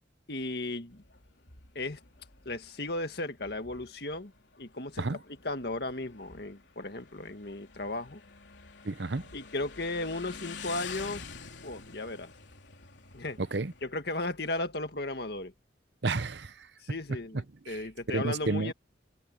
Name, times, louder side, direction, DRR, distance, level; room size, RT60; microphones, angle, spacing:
voice 1, 0.3-1.0 1.8-2.0 2.5-4.3 4.6-8.2 9.3-11.2 11.6-12.3 13.1-13.4 13.8-15.5 16.8-18.7, left 2 dB, 60° left, 1.9 m, -35 dB
Motorcycle, 0.9-13.8, left 5 dB, 80° left, 3.2 m, -48 dB
voice 2, 8.8-9.2 13.4-13.7 16.0-16.5 17.7-17.8 18.1-18.7, right 3 dB, 70° right, 0.9 m, -31 dB
open air
head